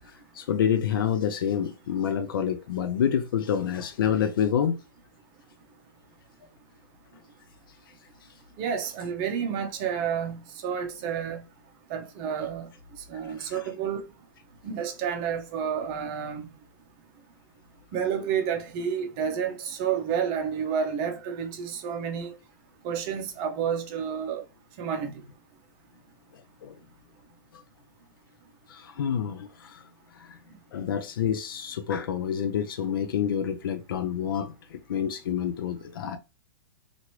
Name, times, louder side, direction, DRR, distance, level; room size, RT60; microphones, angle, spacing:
voice 1, 0.0-4.8 13.4-13.7 26.3-26.8 28.7-30.4 30.7-36.2, left 8 dB, 80° left, 0.4 m, -28 dB
voice 2, 8.6-11.4 11.9-12.7 13.1-14.0 14.6-16.5 17.9-22.3 22.8-24.4 24.8-25.1, right 7 dB, 30° right, 0.7 m, -30 dB
3.0 x 2.5 x 2.9 m
hypercardioid pair, 155°, 12 cm